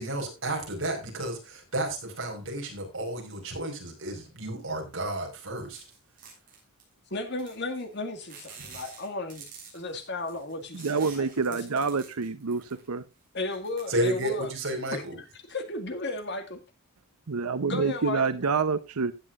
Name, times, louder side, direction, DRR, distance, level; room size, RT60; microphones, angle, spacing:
voice 1, 0.0-5.8 13.9-15.2, right 1 dB, 60° right, 4.8 m, -32 dB
sound 1, 5.7-6.9 7.4-7.9 8.3-13.0 13.4-14.6, right 6 dB, 40° right, 7.1 m, -48 dB
voice 2, 7.1-9.4 9.7-11.7 13.3-14.5 14.9-15.0 15.5-16.6 17.7-18.2, left 2 dB, 50° left, 2.1 m, -34 dB
voice 3, 10.7-12.6 12.9-13.0 17.3-19.1, right 4 dB, 90° right, 0.8 m, -27 dB
15.5 x 10.0 x 2.5 m
head